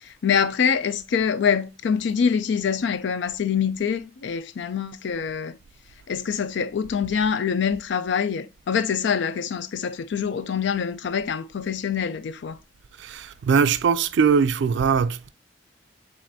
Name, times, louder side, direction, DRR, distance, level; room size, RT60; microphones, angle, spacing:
voice 1, 0.0-5.6 6.1-12.6, left 7 dB, 70° left, 0.4 m, -25 dB
voice 2, 13.0-15.3, right 6 dB, 70° right, 0.3 m, -21 dB
7.3 x 2.5 x 2.6 m
head